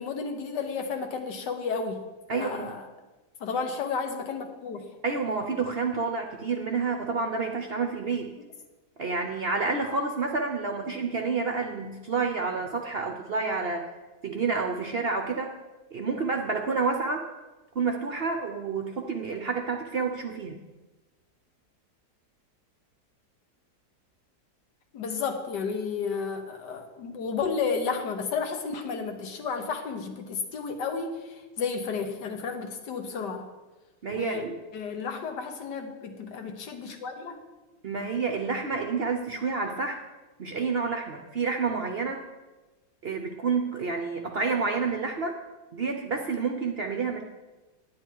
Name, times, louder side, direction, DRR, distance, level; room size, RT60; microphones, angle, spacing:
voice 1, 0.0-2.0 2.3-2.9 3.4-4.9 24.9-33.5 34.1-34.4 34.7-37.4, left 5 dB, 85° left, 5 dB, 1.7 m, -32 dB
voice 2, 2.3-2.8 5.0-8.3 9.0-13.9 14.2-15.5 15.9-17.3 17.7-20.6 34.0-34.6 37.8-40.0 40.4-42.2 43.0-45.4 45.7-47.2, right 4 dB, 55° right, 4 dB, 0.7 m, -29 dB
10.0 x 9.8 x 4.6 m, 1.2 s
omnidirectional pair, 1.8 m